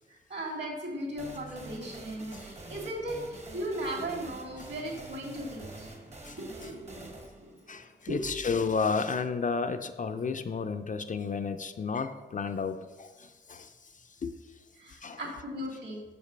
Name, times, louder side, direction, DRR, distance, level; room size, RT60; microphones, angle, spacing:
voice 1, 0.1-5.9 6.4-7.1 7.4-7.5 8.1-8.2 14.8-16.0, right 1 dB, 60° right, -2 dB, 2.6 m, -37 dB
sound 1, 1.2-8.6, right 2 dB, 35° right, 1.1 m, -46 dB
voice 2, 7.7-13.7 14.2-14.3 15.0-15.2, left 5 dB, 40° left, 8 dB, 0.4 m, -32 dB
6.5 x 5.2 x 5.2 m, 1.2 s
wide cardioid pair, 90°, 20 cm